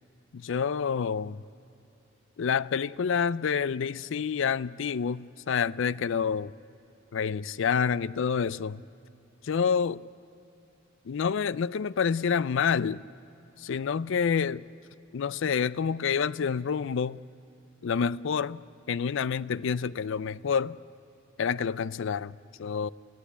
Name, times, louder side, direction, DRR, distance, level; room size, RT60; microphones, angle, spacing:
voice 1, 0.3-1.4 2.4-6.5 7.1-8.8 9.4-10.1 11.1-13.1 13.6-14.6 15.1-17.2 17.8-20.8 21.4-22.9, left 6 dB, 65° left, 0.4 m, -28 dB
30.0 x 15.5 x 8.3 m
head